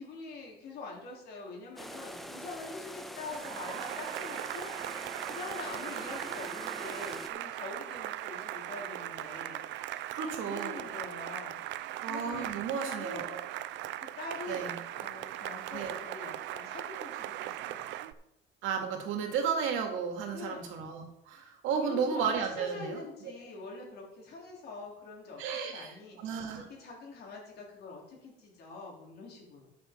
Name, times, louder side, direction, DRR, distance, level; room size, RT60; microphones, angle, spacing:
voice 1, 0.0-4.9 5.3-9.7 10.4-11.6 12.1-13.4 14.0-17.8 20.3-20.8 21.7-29.7, left 3 dB, 55° left, -2 dB, 3.4 m, -44 dB
sound 1, 1.8-7.3, equal, ahead, 0.6 m, -44 dB
Cheering / Applause, 3.3-18.1, right 13 dB, 70° right, 0.5 m, -39 dB
voice 2, 10.1-10.8 12.0-13.4 14.5-14.7 15.7-15.9 18.6-23.0 25.4-26.6, right 6 dB, 85° right, 4 dB, 2.1 m, -33 dB
13.0 x 6.3 x 4.4 m, 0.84 s
cardioid pair, 165°, 20 cm